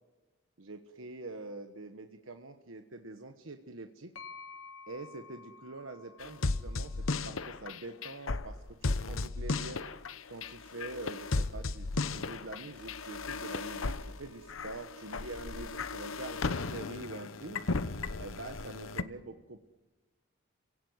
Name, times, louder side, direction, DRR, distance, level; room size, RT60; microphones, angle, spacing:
voice 1, 0.6-4.1 4.9-9.8 10.3-17.6 18.2-19.6, right 2 dB, 85° right, 6 dB, 1.2 m, -45 dB
sound 1, 4.2-7.9, left 5 dB, 70° left, 1.7 m, -52 dB
sound 2, 6.2-19.0, left 3 dB, 90° left, 0.9 m, -35 dB
29.5 x 17.0 x 9.5 m, 1.2 s
head